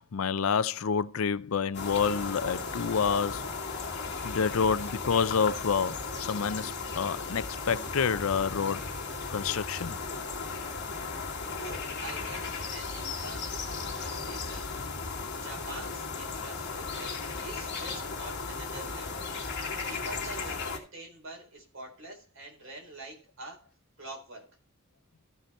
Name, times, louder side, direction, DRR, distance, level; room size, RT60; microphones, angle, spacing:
voice 1, 0.0-3.5 4.2-8.9 9.3-10.0, left 6 dB, 70° left, 0.5 m, -28 dB
sound 1, 1.7-20.8, left 4 dB, 50° left, 2.6 m, -36 dB
voice 2, 11.6-13.5 13.9-14.7 15.3-19.3 19.9-23.7 24.0-24.5, right 2 dB, 60° right, 4.1 m, -45 dB
14.5 x 5.6 x 4.3 m
head